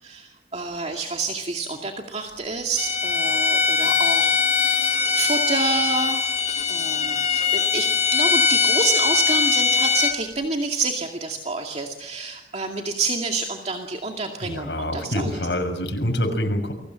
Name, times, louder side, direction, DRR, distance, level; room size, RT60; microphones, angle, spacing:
voice 1, 0.0-6.3 6.7-15.4, right 3 dB, 35° right, 2 dB, 2.3 m, -28 dB
Bowed string instrument, 2.8-10.2, left 5 dB, 40° left, 2.1 m, -21 dB
voice 2, 14.4-16.7, left 1 dB, 75° left, 5 dB, 6.6 m, -26 dB
29.5 x 23.5 x 7.6 m, 0.84 s
head